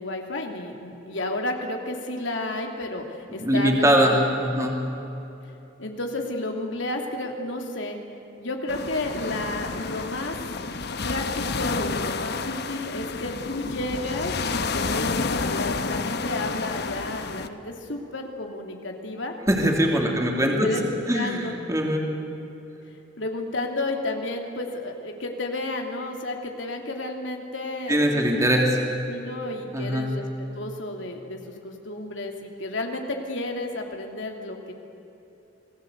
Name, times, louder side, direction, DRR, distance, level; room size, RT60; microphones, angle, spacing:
voice 1, 0.0-4.2 4.6-4.7 5.8-8.0 8.4-10.3 10.7-19.3 20.0-21.5 23.2-28.3 29.1-30.3 30.6-34.7, left 2 dB, 85° left, 2 dB, 2.9 m, -32 dB
voice 2, 3.4-4.8 19.5-20.7 21.1-22.0 27.9-28.8 29.7-30.1, equal, 20° right, 0 dB, 3.0 m, -22 dB
sound 1, 8.7-17.5, left 4 dB, 60° left, 1.1 m, -30 dB
28.0 x 19.5 x 8.1 m, 3.0 s
head